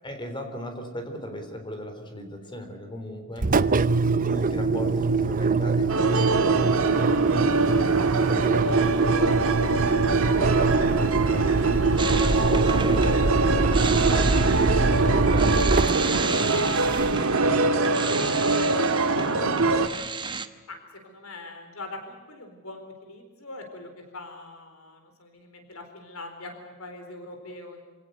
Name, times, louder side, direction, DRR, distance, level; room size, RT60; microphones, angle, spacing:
voice 1, 0.0-10.0 10.6-14.7 15.1-19.4, left 1 dB, 25° left, 6 dB, 3.8 m, -39 dB
Engine, 3.4-17.4, right 4 dB, 40° right, 0.7 m, -23 dB
sound 1, 5.9-19.9, right 3 dB, 75° right, 1.8 m, -24 dB
sound 2, 12.0-20.5, right 4 dB, 20° right, 1.1 m, -33 dB
voice 2, 21.0-27.8, left 2 dB, 75° left, 5 dB, 4.3 m, -42 dB
27.0 x 18.0 x 8.1 m, 1.3 s
head